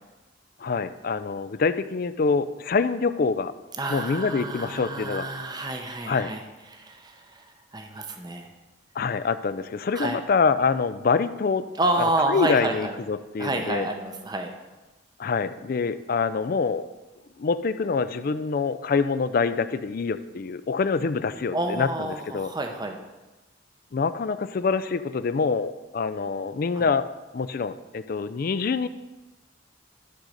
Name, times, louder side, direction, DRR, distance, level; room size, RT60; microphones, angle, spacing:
voice 1, 0.6-3.5 3.9-5.3 6.0-6.3 8.9-11.7 12.0-13.9 15.2-16.9 17.4-22.5 23.9-27.1 27.3-28.9, left 4 dB, 45° left, 13 dB, 0.4 m, -25 dB
voice 2, 3.8-6.4 6.7-7.5 7.7-8.5 9.9-10.2 11.8-12.9 13.4-14.5 21.5-23.0 26.7-26.9, right 2 dB, 20° right, 4 dB, 0.7 m, -29 dB
12.0 x 4.0 x 6.4 m, 1.1 s
head